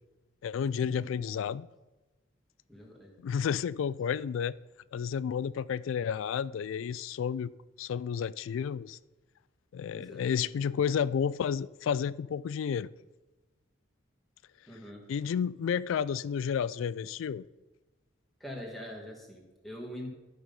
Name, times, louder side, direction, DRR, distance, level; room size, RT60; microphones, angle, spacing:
voice 1, 0.4-1.7 3.2-4.6 4.9-7.5 7.8-9.0 9.7-12.9 15.1-17.4, left 7 dB, 80° left, 0.3 m, -31 dB
voice 2, 2.7-3.1 9.9-10.3 14.7-15.1 18.4-20.1, left 1 dB, ahead, 1.6 m, -43 dB
11.5 x 5.3 x 5.4 m
head